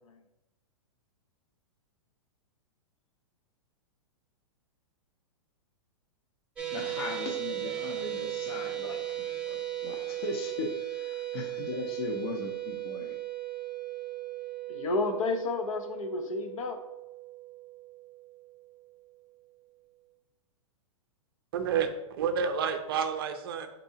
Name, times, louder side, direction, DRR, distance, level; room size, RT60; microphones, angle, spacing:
sound 1, 6.6-18.9, right 13 dB, 5° right, 0.7 m, -37 dB
voice 1, 6.7-13.1, left 3 dB, 50° left, 2 dB, 0.7 m, -38 dB
voice 2, 14.7-16.8, left 3 dB, 90° left, 6 dB, 0.8 m, -31 dB
voice 3, 21.5-23.7, right 6 dB, 45° right, 8 dB, 0.4 m, -30 dB
4.5 x 4.1 x 2.7 m, 0.92 s
hypercardioid pair, 165°, 17 cm